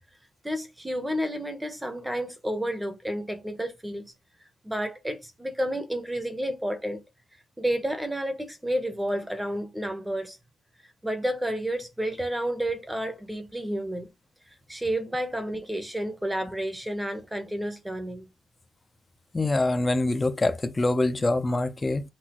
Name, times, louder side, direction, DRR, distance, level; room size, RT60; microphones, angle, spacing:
voice 1, 0.4-4.1 4.6-7.0 7.6-10.4 11.0-14.1 14.7-18.2, equal, 5° right, 0.9 m, -30 dB
voice 2, 19.3-22.0, left 2 dB, 20° left, 0.6 m, -25 dB
5.9 x 2.7 x 3.0 m
cardioid pair, 140°, 0 cm